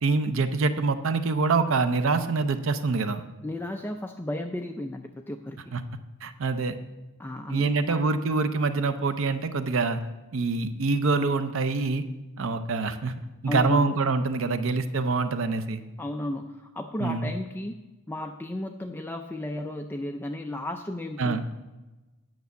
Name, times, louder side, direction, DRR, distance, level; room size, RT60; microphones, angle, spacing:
voice 1, 0.0-3.2 5.7-5.8 6.2-6.7 7.5-10.0 10.3-12.0 12.4-13.1 13.4-15.8 17.0-17.3 21.2-21.4, right 4 dB, 60° right, 10 dB, 0.6 m, -25 dB
voice 2, 3.4-5.6 7.2-8.0 13.4-14.0 16.0-17.8 18.1-21.4, left 1 dB, 10° left, 4 dB, 0.4 m, -33 dB
9.5 x 6.2 x 8.1 m, 1.1 s
head